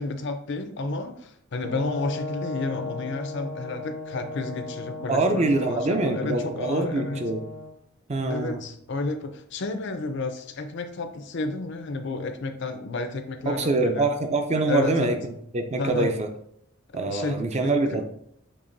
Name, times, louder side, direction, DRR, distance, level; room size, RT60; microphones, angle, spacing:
voice 1, 0.0-7.3 8.3-14.1 14.7-15.2 15.8-16.1 16.9-17.6, left 3 dB, 55° left, 7 dB, 0.5 m, -31 dB
Brass instrument, 1.6-7.7, left 2 dB, 55° right, 0.8 m, -37 dB
voice 2, 5.1-7.4 8.1-8.6 13.5-15.2 15.5-16.3 16.9-18.0, right 2 dB, 30° right, 6 dB, 0.4 m, -24 dB
6.7 x 3.1 x 2.6 m, 0.71 s
head